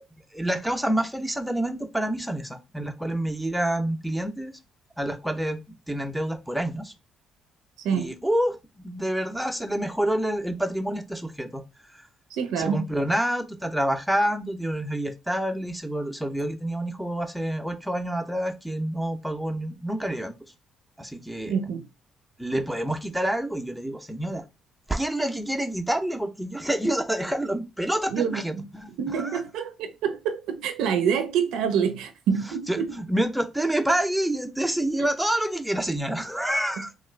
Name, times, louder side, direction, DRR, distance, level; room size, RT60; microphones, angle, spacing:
voice 1, 0.3-4.5 5.0-6.9 7.9-8.6 8.8-11.6 11.9-12.0 12.6-20.3 21.0-21.6 22.4-24.4 24.9-29.4 32.7-36.9, right 1 dB, 5° right, 0.5 m, -28 dB
voice 2, 12.3-12.9 21.5-21.8 28.1-28.7 29.0-33.0 36.8-36.9, right 7 dB, 85° right, 0.4 m, -26 dB
2.9 x 2.4 x 3.2 m
cardioid pair, 90°, 0 cm